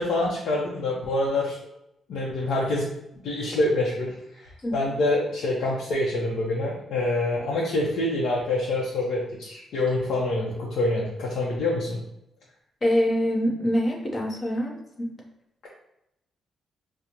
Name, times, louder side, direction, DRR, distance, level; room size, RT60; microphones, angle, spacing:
voice 1, 0.0-1.6 2.1-2.9 3.2-12.0, left 2 dB, 80° left, -4 dB, 0.6 m, -26 dB
voice 2, 12.8-15.1, equal, 30° left, -1 dB, 0.8 m, -25 dB
4.9 x 2.0 x 2.9 m, 0.85 s
cardioid pair, 115°, 0 cm